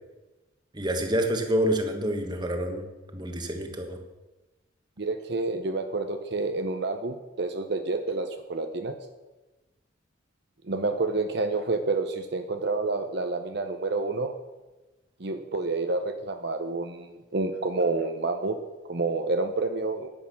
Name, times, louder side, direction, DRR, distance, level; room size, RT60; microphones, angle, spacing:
voice 1, 0.7-4.0, equal, 20° right, 5 dB, 1.5 m, -28 dB
voice 2, 5.0-9.0 10.7-14.3 15.2-18.6 18.9-20.1, right 3 dB, 55° right, 6 dB, 0.8 m, -29 dB
10.5 x 10.0 x 7.1 m, 1.1 s
head